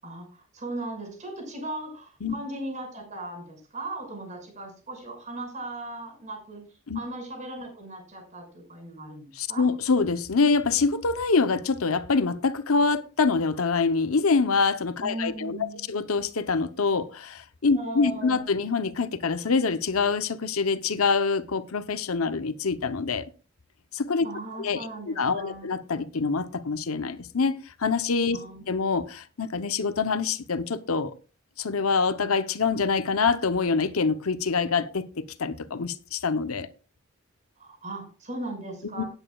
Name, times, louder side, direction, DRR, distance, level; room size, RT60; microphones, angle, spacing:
voice 1, 0.0-9.7 15.0-15.9 17.7-18.5 24.2-25.7 28.3-28.7 37.6-39.1, right 2 dB, 35° right, 6.0 m, -38 dB
voice 2, 9.3-23.2 23.9-24.3 24.6-28.4 28.7-31.1 31.6-36.7 39.0-39.1, left 4 dB, 85° left, 0.8 m, -25 dB
18.5 x 9.0 x 2.4 m
head